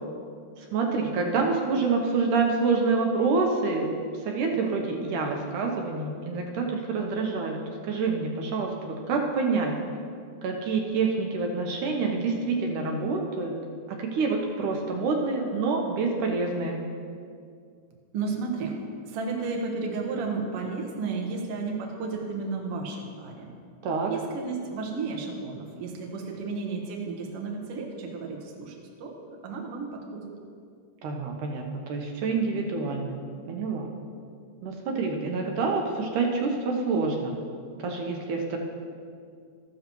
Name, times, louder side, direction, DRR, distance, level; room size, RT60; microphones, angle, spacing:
voice 1, 0.6-3.9 4.2-9.8 10.4-13.6 13.9-16.8 23.8-24.1 31.0-33.2 33.5-33.9 34.6-37.4 37.8-38.6, right 4 dB, 75° right, 1 dB, 2.4 m, -27 dB
voice 2, 18.1-23.5 24.1-30.3, right 4 dB, 55° right, 0 dB, 1.9 m, -33 dB
13.5 x 12.5 x 3.0 m, 2.2 s
omnidirectional pair, 3.7 m